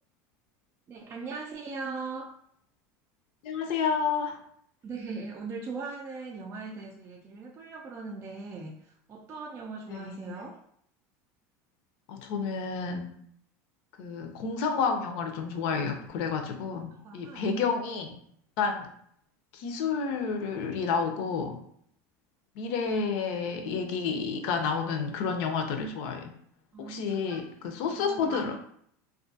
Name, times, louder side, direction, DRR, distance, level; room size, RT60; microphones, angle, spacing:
voice 1, 0.9-2.3 4.8-10.6 16.9-17.5 26.7-27.4 27.9-28.4, right 4 dB, 30° right, -1 dB, 0.4 m, -40 dB
voice 2, 3.4-4.4 9.9-10.4 12.1-13.1 14.0-18.2 18.6-18.9 19.5-21.6 22.6-26.3 26.8-28.6, left 5 dB, 65° left, 5 dB, 0.5 m, -30 dB
2.4 x 2.3 x 2.6 m, 0.67 s
supercardioid pair, 125°, 9 cm